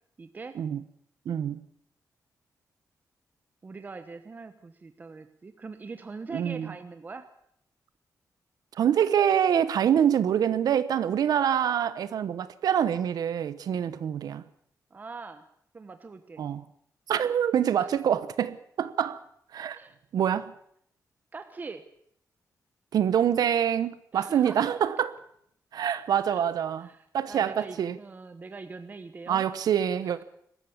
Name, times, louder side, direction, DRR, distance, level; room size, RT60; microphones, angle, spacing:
voice 1, 0.2-0.6 3.6-7.3 14.9-15.4 15.7-16.4 17.8-17.9 19.7-20.0 21.3-21.8 24.1-24.6 26.3-26.5 26.8-29.4, right 4 dB, 25° right, 1.2 m, -42 dB
voice 2, 1.3-1.6 6.3-6.7 8.8-14.4 16.4-16.6 17.1-19.2 19.5-19.8 20.1-20.5 22.9-25.1 25.7-26.9 27.1-28.0 29.3-30.2, right 9 dB, 80° right, 1.1 m, -25 dB
22.5 x 14.0 x 8.6 m
wide cardioid pair, 170°, 6 cm